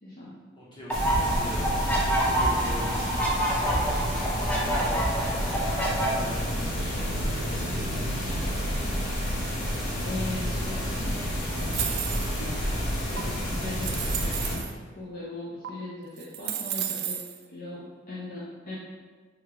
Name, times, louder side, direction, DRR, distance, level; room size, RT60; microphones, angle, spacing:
voice 1, 0.0-0.4 10.0-11.7 12.4-12.7 13.1-14.7 15.0-17.2 17.5-18.8, left 1 dB, 45° left, -7 dB, 0.6 m, -39 dB
voice 2, 0.6-5.0 5.4-8.6 9.0-9.1, equal, 25° left, -8 dB, 1.2 m, -42 dB
sound 1, 0.9-14.6, equal, 90° left, 1.3 m, -30 dB
sound 2, 0.9-6.1, right 1 dB, 10° left, 0.6 m, -27 dB
sound 3, 11.5-12.5 13.2-13.3 13.8-14.7 15.6-15.7 16.2-17.4, right 10 dB, 55° right, 0.3 m, -33 dB
3.5 x 3.5 x 3.3 m, 1.4 s
head